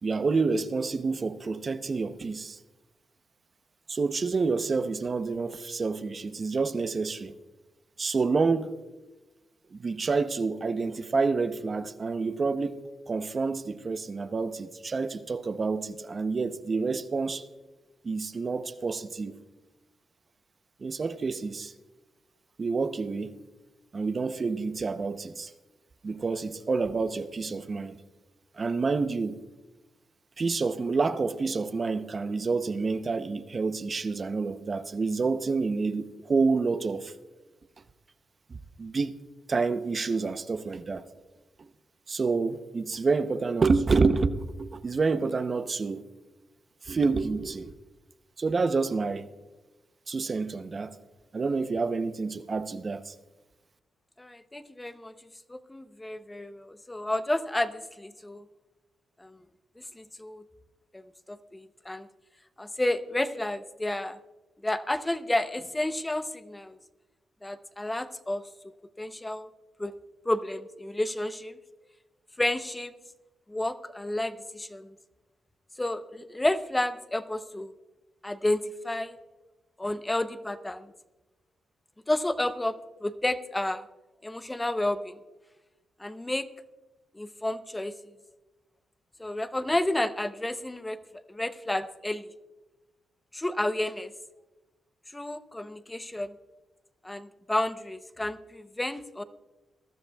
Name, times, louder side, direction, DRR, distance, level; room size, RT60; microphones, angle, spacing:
voice 1, 0.0-2.6 3.9-7.3 8.0-8.8 9.7-17.4 18.0-19.3 20.8-21.7 22.6-23.4 23.9-25.5 26.0-28.0 28.6-29.4 30.4-37.1 38.8-39.2 39.5-41.1 42.1-46.0 46.8-47.7 48.4-49.3 50.1-51.0 51.3-53.1, right 4 dB, 40° right, 0.7 m, -28 dB
voice 2, 54.2-55.1 55.5-58.4 59.2-59.4 59.9-60.4 60.9-61.0 61.3-62.1 62.6-64.2 64.6-66.8 67.4-68.4 69.0-69.5 69.8-69.9 70.3-71.6 72.4-72.9 73.5-75.0 75.8-77.7 78.2-79.2 79.8-80.9 82.1-82.7 83.0-83.8 84.2-85.2 86.0-86.5 87.1-88.2 89.2-91.0 91.3-92.3 93.3-94.1 95.1-96.3 97.0-99.2, left 1 dB, 15° left, 0.7 m, -31 dB
21.0 x 13.0 x 2.3 m
cardioid pair, 90°, 0 cm